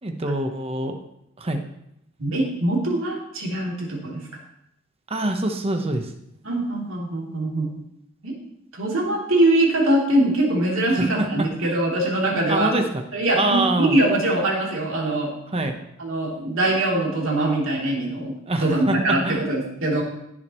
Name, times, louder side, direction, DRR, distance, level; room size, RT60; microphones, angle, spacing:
voice 1, 0.0-0.9 1.4-1.6 5.1-6.1 10.9-11.7 12.5-13.0 13.3-14.0 15.5-15.7 18.5-19.5, right 2 dB, 30° right, 5 dB, 1.2 m, -25 dB
voice 2, 2.2-4.2 6.4-7.7 8.2-8.3 8.7-12.7 13.1-15.3 16.0-18.3 18.6-20.0, right 1 dB, 65° right, -3 dB, 3.3 m, -22 dB
17.5 x 7.8 x 3.2 m, 0.79 s
head